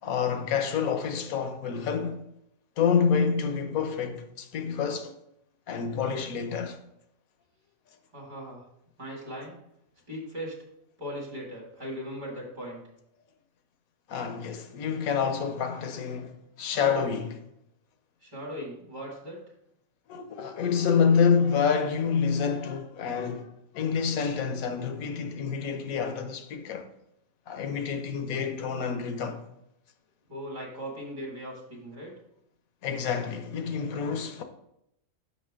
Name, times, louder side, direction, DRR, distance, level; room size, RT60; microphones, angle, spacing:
voice 1, 0.0-2.2 2.8-5.2 5.7-6.8 14.1-17.4 20.1-26.9 27.5-29.4 32.8-34.4, left 6 dB, 85° left, 1.2 m, -28 dB
voice 2, 8.1-8.6 9.0-9.6 10.1-10.6 11.0-12.8 18.2-19.4 30.3-32.1, equal, 35° right, 2.4 m, -38 dB
6.6 x 5.6 x 3.6 m
omnidirectional pair, 1.4 m